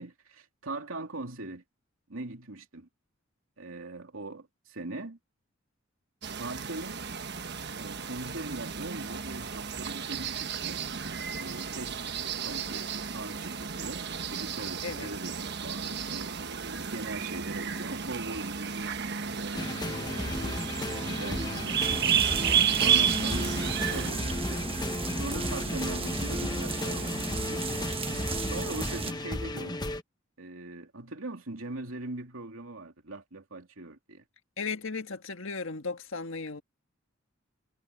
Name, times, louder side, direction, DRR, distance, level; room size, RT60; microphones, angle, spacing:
voice 1, 0.0-1.6 2.1-2.9 3.6-5.2 6.4-7.0 7.7-10.8 11.4-12.0 12.4-16.4 16.6-20.6 21.0-22.0 22.8-24.7 25.2-27.6 28.4-29.9 30.4-34.2, right 2 dB, 75° right, 3.1 m, -41 dB
sound 1, 6.2-24.1, right 8 dB, 55° right, 1.3 m, -32 dB
sound 2, 19.5-30.0, left 1 dB, 20° left, 0.9 m, -34 dB
sound 3, 21.6-29.1, right 3 dB, 25° right, 1.1 m, -35 dB
voice 2, 34.6-36.6, left 4 dB, 65° left, 1.7 m, -35 dB
head